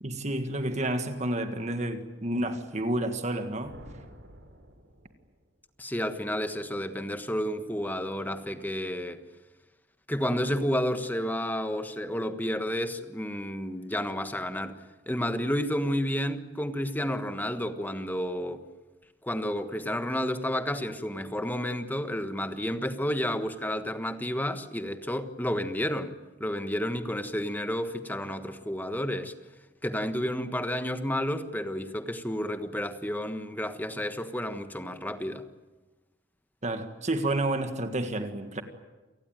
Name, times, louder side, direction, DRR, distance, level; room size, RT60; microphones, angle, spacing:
voice 1, 0.0-3.8 36.6-38.6, right 1 dB, 40° right, 1.7 m, -30 dB
sound 1, 3.6-5.6, equal, 75° right, 4.3 m, -50 dB
voice 2, 5.8-9.2 10.1-14.8 15.1-18.6 19.2-26.1 26.4-29.3 29.8-35.4, equal, 10° left, 1.4 m, -31 dB
28.5 x 18.5 x 9.1 m
head